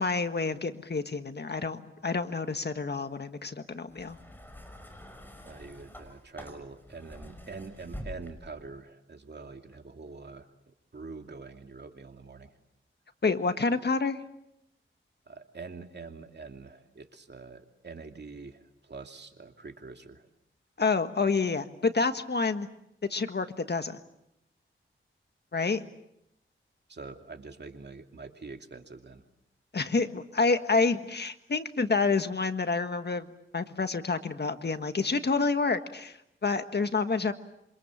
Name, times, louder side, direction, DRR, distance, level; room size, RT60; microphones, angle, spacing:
voice 1, 0.0-4.2 13.2-14.2 20.8-22.7 23.1-24.0 25.5-25.8 29.7-33.3 33.5-37.3, left 4 dB, 55° left, 9 dB, 1.6 m, -28 dB
sound 1, 3.9-8.7 9.6-9.8, left 1 dB, 10° left, 6.0 m, -46 dB
voice 2, 5.4-12.5 15.3-20.2 26.9-29.2, right 4 dB, 55° right, 5 dB, 2.6 m, -45 dB
27.5 x 26.0 x 7.4 m, 0.82 s
wide cardioid pair, 85°, 21 cm